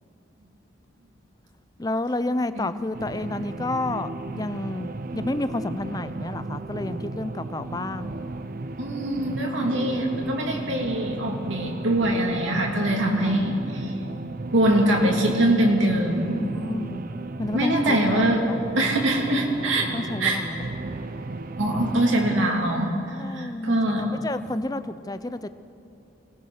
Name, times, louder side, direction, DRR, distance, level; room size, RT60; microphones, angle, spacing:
voice 1, 1.8-8.2 13.2-13.4 16.5-17.0 17.4-18.2 19.7-20.7 23.2-25.5, left 2 dB, 20° left, 12 dB, 0.5 m, -30 dB
sound 1, 2.9-22.5, right 2 dB, 45° right, 0.6 m, -34 dB
voice 2, 8.8-13.9 14.5-16.4 17.5-20.4 21.6-24.1, right 1 dB, 75° right, 0 dB, 2.9 m, -23 dB
25.0 x 19.0 x 6.6 m, 2.7 s
head